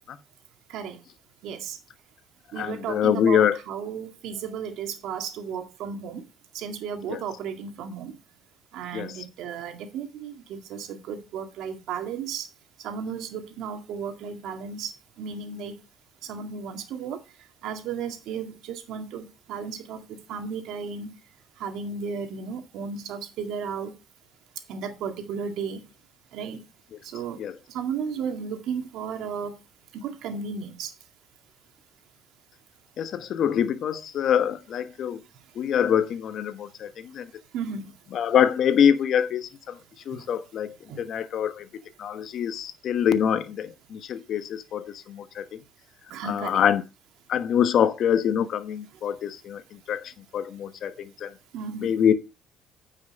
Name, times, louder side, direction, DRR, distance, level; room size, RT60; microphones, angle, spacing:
voice 1, 1.4-1.8 2.5-6.2 6.5-8.1 8.7-12.5 12.8-14.9 15.2-15.7 16.2-17.2 17.6-20.0 20.3-21.1 21.6-23.9 24.7-25.8 26.3-26.6 27.1-27.4 27.7-29.5 29.9-30.9 37.5-37.8 40.9-41.0 46.1-46.6 51.5-51.9, right 6 dB, 75° right, 2.0 m, -34 dB
voice 2, 2.6-3.6 7.1-7.2 8.9-9.2 27.4-27.5 33.0-35.2 35.5-37.3 38.1-39.8 40.1-41.7 42.0-45.4 46.2-46.8 47.3-51.3 51.8-52.1, left 8 dB, 60° left, 1.1 m, -25 dB
9.4 x 5.7 x 5.3 m
supercardioid pair, 75°, 0 cm